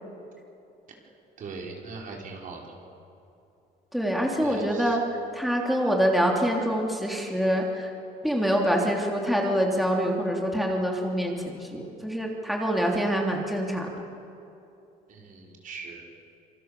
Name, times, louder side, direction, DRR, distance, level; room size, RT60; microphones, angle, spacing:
voice 1, 1.4-2.7 4.4-5.0 15.1-16.0, right 4 dB, 50° right, 0 dB, 5.2 m, -40 dB
voice 2, 3.9-5.0 5.3-7.9 8.2-14.0, equal, ahead, -1 dB, 3.4 m, -25 dB
27.0 x 24.0 x 7.0 m, 2.8 s
cardioid pair, 110°, 17 cm